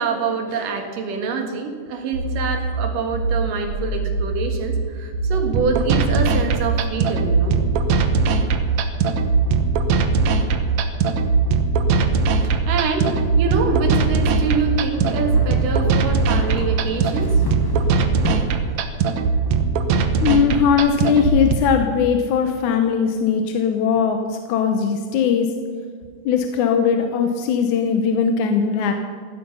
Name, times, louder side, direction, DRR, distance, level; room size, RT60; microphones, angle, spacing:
voice 1, 0.0-7.6 10.3-10.4 12.4-17.4 23.9-24.0, right 4 dB, 85° right, 4 dB, 3.5 m, -26 dB
sound 1, 2.1-18.1, right 3 dB, 50° right, 4.7 m, -24 dB
sound 2, 5.5-21.5, right 5 dB, 70° right, 2.1 m, -21 dB
sound 3, 14.6-18.7, left 3 dB, 35° left, 0.3 m, -33 dB
voice 2, 20.2-25.5 26.3-28.9, left 7 dB, 75° left, 5 dB, 2.2 m, -19 dB
16.0 x 12.0 x 5.5 m, 2.1 s
omnidirectional pair, 3.7 m